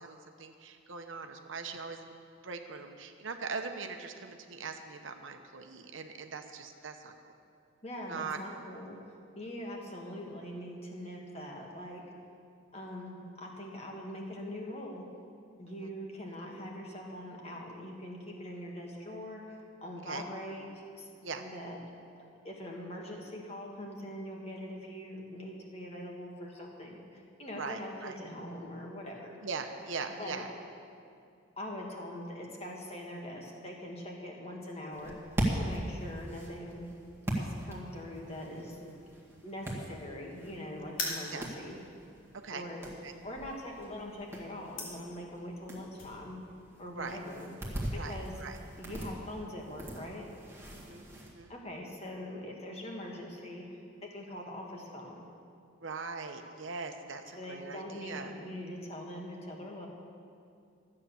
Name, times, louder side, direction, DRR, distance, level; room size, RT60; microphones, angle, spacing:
voice 1, 0.0-2.1 2.4-7.1 8.1-8.6 15.8-15.9 20.0-20.2 21.2-21.4 27.5-28.2 29.4-30.5 41.3-41.5 42.4-42.6 43.0-43.1 46.9-47.2 47.9-48.6 50.7-51.5 55.8-58.3, right 4 dB, 75° right, 6 dB, 0.9 m, -41 dB
voice 2, 7.8-9.0 9.4-12.0 12.7-15.0 15.6-21.1 21.4-21.8 22.1-29.3 30.2-30.5 31.6-35.2 35.5-36.9 37.3-38.9 39.4-41.8 42.5-42.9 43.2-46.4 46.8-47.5 47.9-48.4 48.8-50.3 51.5-55.3 57.3-59.9, left 1 dB, 30° left, -1 dB, 1.8 m, -42 dB
sound 1, 34.9-51.3, right 1 dB, 15° right, 1.7 m, -40 dB
sound 2, 40.9-46.1, left 3 dB, 85° left, 3.0 m, -42 dB
13.0 x 8.6 x 6.9 m, 2.4 s
head